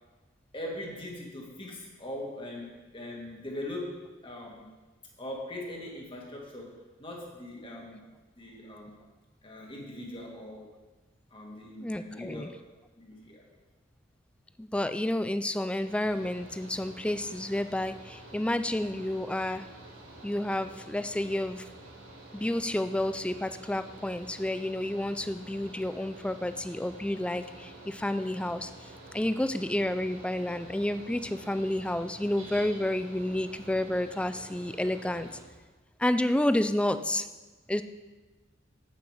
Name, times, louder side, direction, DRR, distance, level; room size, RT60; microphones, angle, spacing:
voice 1, 0.5-4.7 5.2-8.1 8.3-9.0 9.4-10.7 11.3-12.5 13.0-13.4, left 1 dB, 25° left, -2 dB, 1.9 m, -41 dB
voice 2, 11.8-12.5 14.6-19.6 20.2-21.6 22.3-35.3 36.0-37.3 37.7-37.8, left 1 dB, 5° left, 11 dB, 0.3 m, -30 dB
Mechanical fan, 15.8-35.4, right 2 dB, 85° right, 2.1 m, -48 dB
8.3 x 7.6 x 5.0 m, 1.2 s
head